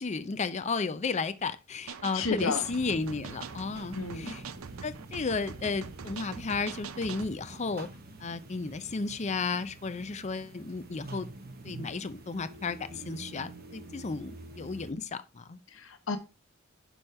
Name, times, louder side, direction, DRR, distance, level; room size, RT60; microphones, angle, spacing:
voice 1, 0.0-4.4 4.8-7.9 8.2-11.3 11.6-15.6, left 4 dB, 35° left, 0.5 m, -33 dB
sound 1, 1.9-7.4, right 6 dB, 85° right, 0.6 m, -43 dB
voice 2, 2.1-2.6 3.9-4.4 15.7-16.2, left 4 dB, 65° left, 0.9 m, -32 dB
sound 2, 2.6-14.9, right 2 dB, 50° right, 0.9 m, -47 dB
6.2 x 5.1 x 4.3 m
head